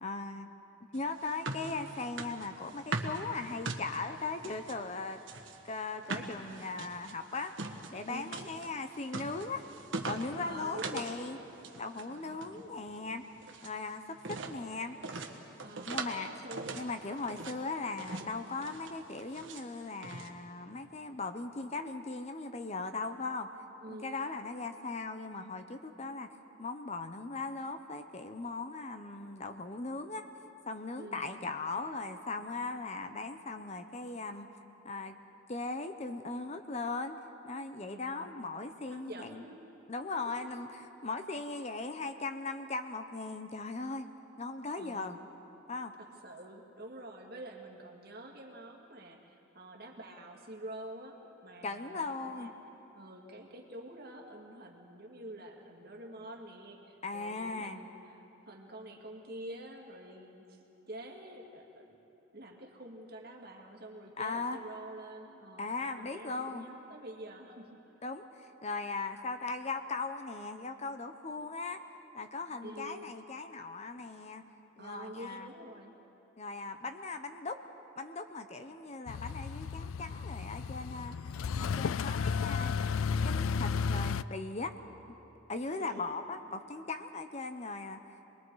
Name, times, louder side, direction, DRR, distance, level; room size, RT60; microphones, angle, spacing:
voice 1, 0.0-0.5 0.9-5.2 5.6-7.5 7.9-9.6 10.0-11.4 11.7-13.3 13.6-15.0 15.9-16.3 16.7-23.5 23.9-26.3 26.6-30.3 30.7-34.5 34.8-35.2 35.5-37.2 37.4-39.4 39.9-44.1 44.4-45.2 45.7-45.9 51.6-52.5 57.0-57.9 64.2-64.6 65.6-66.7 68.0-71.8 72.1-74.4 74.8-75.5 76.4-77.6 78.0-81.1 81.6-82.8 83.2-84.7 85.1-85.2 85.5-88.0, left 3 dB, 30° left, 8 dB, 0.7 m, -38 dB
sound 1, 0.9-4.8 5.2-11.2 11.5-12.1 12.3-13.8 14.2-14.6 15.0-16.2 16.5-17.6 18.0-18.3 18.6-19.6 20.0-20.3, right 3 dB, 65° right, 1.4 m, -41 dB
voice 2, 8.1-8.5 10.3-11.2 12.1-12.7 15.6-16.8 23.8-24.2 31.0-31.4 37.8-38.3 38.9-39.6 40.2-40.5 44.8-45.2 46.0-52.5 52.9-62.0 62.3-65.7 66.0-67.8 72.6-73.1 74.8-75.9 85.6-86.2, right 1 dB, 50° right, 1 dB, 2.1 m, -47 dB
sound 2, 79.1-84.2, left 5 dB, 80° left, 0.4 m, -33 dB
27.5 x 21.0 x 4.8 m, 3.0 s
head